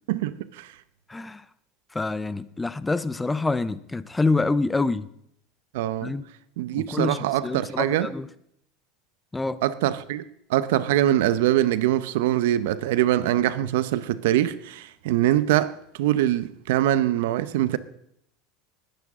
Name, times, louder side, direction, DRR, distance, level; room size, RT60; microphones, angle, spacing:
voice 1, 0.1-0.7 5.7-6.1 6.6-8.1 9.6-10.2 10.5-17.8, right 13 dB, 80° right, 0.8 m, -23 dB
voice 2, 1.1-1.4 1.9-5.1 6.0-6.2 6.7-7.2 7.4-8.3 9.3-9.6, left 3 dB, 10° left, 0.7 m, -26 dB
20.0 x 9.9 x 3.7 m
supercardioid pair, 115°, 0 cm